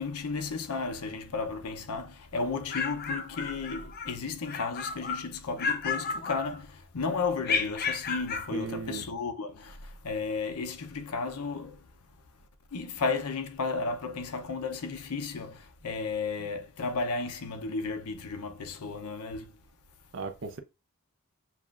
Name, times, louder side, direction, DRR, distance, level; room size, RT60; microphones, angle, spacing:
voice 1, 0.0-11.8 12.7-19.5, left 4 dB, 90° left, 0.6 m, -33 dB
sound 1, 2.5-4.1 4.5-5.3 5.6-6.8 7.4-8.5, left 5 dB, 45° left, 0.6 m, -32 dB
voice 2, 8.5-9.1 16.4-16.5 20.1-20.6, right 5 dB, 55° right, 0.5 m, -37 dB
7.1 x 2.4 x 2.4 m
head